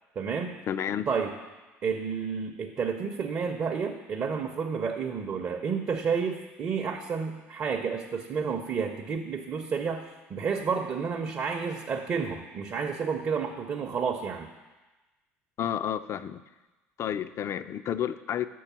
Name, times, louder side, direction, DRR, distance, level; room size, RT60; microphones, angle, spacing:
voice 1, 0.2-0.6 1.1-1.4 1.8-10.0 10.3-14.5, right 6 dB, 40° right, 3 dB, 0.7 m, -30 dB
voice 2, 0.7-1.1 15.6-16.4 17.0-18.5, left 9 dB, 45° left, 14 dB, 0.3 m, -31 dB
6.6 x 4.6 x 6.0 m, 1.1 s
hypercardioid pair, 60°, 7 cm